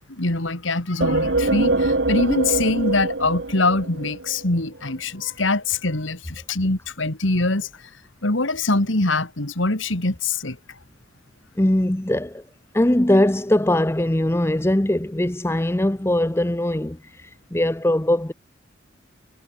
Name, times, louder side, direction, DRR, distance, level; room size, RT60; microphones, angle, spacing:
voice 1, 0.1-7.7 8.2-10.6, left 2 dB, 80° left, 2.7 m, -23 dB
sound 1, 1.0-4.6, right 2 dB, 60° right, 1.7 m, -23 dB
voice 2, 11.6-12.4 12.7-18.3, left 1 dB, 15° left, 0.7 m, -21 dB
head